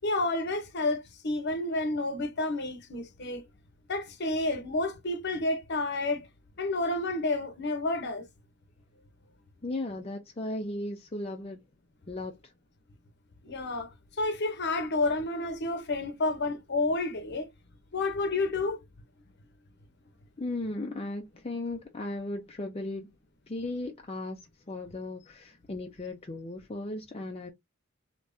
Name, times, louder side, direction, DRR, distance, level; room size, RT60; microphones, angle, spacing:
voice 1, 0.0-3.5 3.9-6.3 6.6-8.3 13.4-13.9 14.2-17.5 17.9-18.8, left 2 dB, 50° left, 0.8 m, -30 dB
voice 2, 9.6-11.6 12.1-12.5 20.4-23.1 23.5-24.4 24.7-27.5, left 2 dB, 30° left, 0.5 m, -36 dB
3.4 x 2.9 x 2.7 m
head